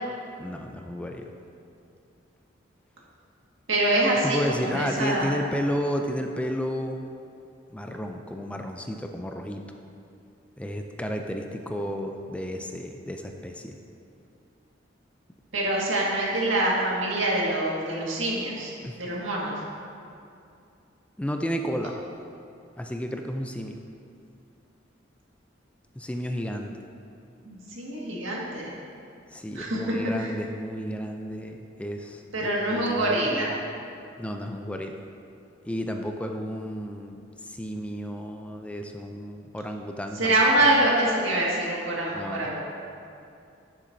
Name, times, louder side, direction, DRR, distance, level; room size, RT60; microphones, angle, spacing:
voice 1, 0.4-1.3 4.2-7.1 7.7-9.7 10.6-13.8 18.8-19.0 21.2-21.9 22.8-23.8 26.0-26.8 29.3-33.6 34.2-35.0 35.7-40.4 42.1-42.5, equal, 5° left, 4 dB, 0.4 m, -32 dB
voice 2, 3.7-5.3 15.5-19.5 27.4-28.7 29.5-30.3 32.3-33.5 40.2-42.6, right 1 dB, 85° right, -4 dB, 1.8 m, -25 dB
11.0 x 7.3 x 2.7 m, 2.5 s
head